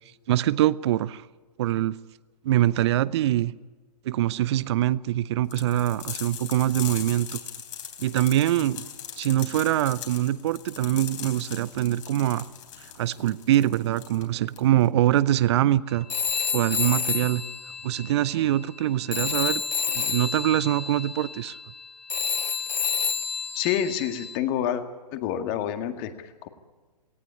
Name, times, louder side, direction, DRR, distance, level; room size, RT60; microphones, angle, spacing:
voice 1, 0.3-1.2 1.6-2.0 2.4-3.5 4.0-7.4 8.0-8.8 9.2-12.4 12.8-16.1 16.5-17.4 17.8-19.6 19.9-21.6, right 13 dB, 40° right, 19 dB, 0.6 m, -24 dB
sound 1, 5.5-14.9, left 9 dB, 50° left, 3.6 m, -40 dB
Telephone, 16.1-18.8 19.1-24.4, left 6 dB, 80° left, 0.9 m, -29 dB
voice 2, 23.5-24.8 25.1-26.5, left 10 dB, 35° left, 7 dB, 2.0 m, -28 dB
18.5 x 18.5 x 9.8 m, 1.3 s
figure-of-eight pair, 120°, 21 cm